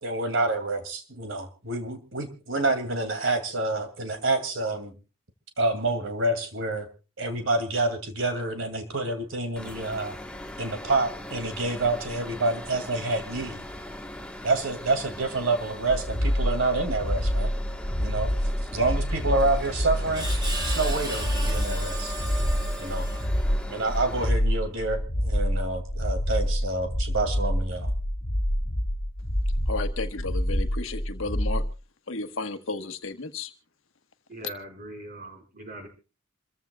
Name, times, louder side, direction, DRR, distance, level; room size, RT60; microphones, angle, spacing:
voice 1, 0.0-4.9 5.6-6.9 7.2-10.2 10.6-13.6 14.4-17.5 18.0-18.3 18.7-20.3 20.6-22.1 22.8-23.1 23.7-27.9, right 2 dB, 65° right, 2.5 m, -28 dB
sound 1, 9.6-24.3, left 1 dB, 5° left, 1.3 m, -40 dB
sound 2, 15.9-31.7, equal, 50° left, 1.8 m, -27 dB
Screech, 19.4-23.7, right 2 dB, 20° right, 4.5 m, -36 dB
voice 2, 29.7-31.6 32.1-33.5, left 3 dB, 70° left, 1.4 m, -33 dB
voice 3, 34.3-35.9, right 2 dB, 40° right, 5.1 m, -41 dB
27.5 x 15.0 x 2.3 m
head